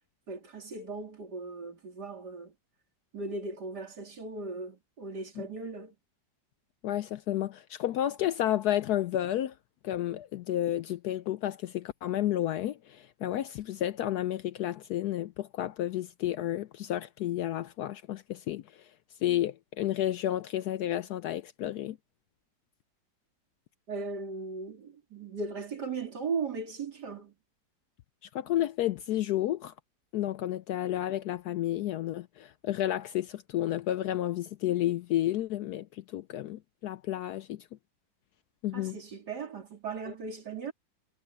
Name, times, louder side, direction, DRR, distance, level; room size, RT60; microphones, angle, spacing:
voice 1, 0.3-2.5 3.1-5.9 23.9-27.3 38.7-40.7, right 4 dB, 60° right, 3.5 m, -37 dB
voice 2, 6.8-9.5 9.8-18.8 19.2-22.0 28.3-29.7 30.1-37.7 38.6-39.0 40.1-40.2, left 13 dB, 70° left, 1.0 m, -31 dB
omnidirectional pair, 2.0 m